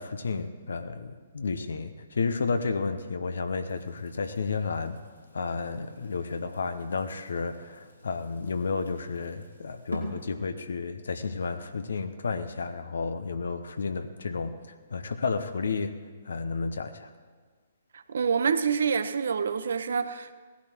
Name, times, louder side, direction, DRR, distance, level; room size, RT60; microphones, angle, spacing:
voice 1, 0.0-5.0 5.3-16.0 16.2-17.1, left 4 dB, 65° left, 0.9 m, -32 dB
sound 1, 3.7-10.2, left 1 dB, 90° left, 3.3 m, -45 dB
voice 2, 17.9-20.3, right 6 dB, 60° right, 0.8 m, -27 dB
18.0 x 11.5 x 4.5 m
figure-of-eight pair, 125°, 0 cm